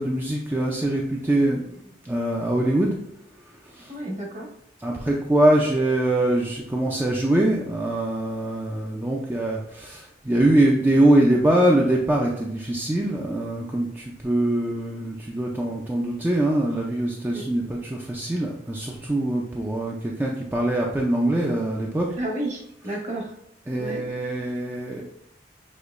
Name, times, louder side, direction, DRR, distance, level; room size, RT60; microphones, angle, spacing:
voice 1, 0.0-3.0 3.4-3.9 4.8-22.2 23.7-25.0, right 1 dB, 10° right, -2 dB, 0.4 m, -23 dB
voice 2, 3.9-4.5 17.3-17.4 22.2-23.3 23.8-24.0, right 1 dB, 40° right, 1 dB, 1.0 m, -31 dB
6.2 x 2.9 x 2.5 m, 0.81 s
head